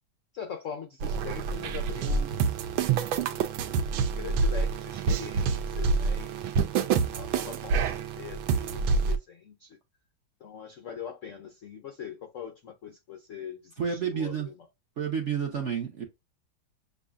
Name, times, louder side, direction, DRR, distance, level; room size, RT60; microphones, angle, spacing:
voice 1, 0.3-2.7 3.3-3.5 4.0-6.4 6.7-9.8 10.4-14.5, left 7 dB, 80° left, 0.7 m, -42 dB
sound 1, 1.0-9.2, right 5 dB, 85° right, 1.4 m, -27 dB
voice 2, 13.8-14.5 15.0-16.0, right 7 dB, 50° right, 0.9 m, -30 dB
7.0 x 2.7 x 2.4 m
omnidirectional pair, 2.3 m